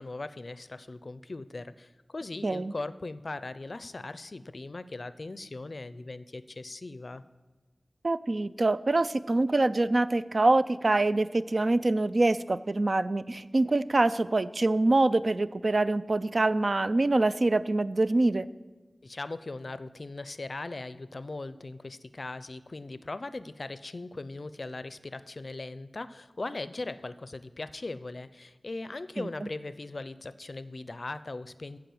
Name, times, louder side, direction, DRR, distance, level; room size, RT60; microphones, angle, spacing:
voice 1, 0.0-7.2 19.0-31.8, left 2 dB, 60° left, 15 dB, 0.4 m, -39 dB
voice 2, 2.4-2.7 8.0-18.5 29.2-29.3, right 2 dB, 55° right, 14 dB, 0.4 m, -25 dB
14.0 x 4.9 x 7.8 m, 1.3 s
wide cardioid pair, 50°, 0 cm